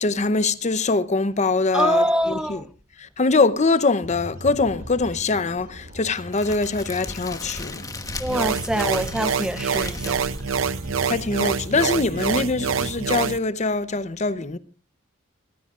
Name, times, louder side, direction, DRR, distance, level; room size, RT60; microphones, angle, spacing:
voice 1, 0.0-2.6 3.0-7.9 11.1-14.6, left 3 dB, 35° left, 0.7 m, -23 dB
voice 2, 1.7-2.7 8.2-10.2, equal, 5° right, 0.6 m, -24 dB
sound 1, 4.0-13.0, equal, 50° right, 7.2 m, -40 dB
Crackle, 6.3-11.4, left 3 dB, 20° left, 1.2 m, -37 dB
sound 2, 8.3-13.4, right 6 dB, 85° right, 0.7 m, -26 dB
21.5 x 15.5 x 2.5 m
head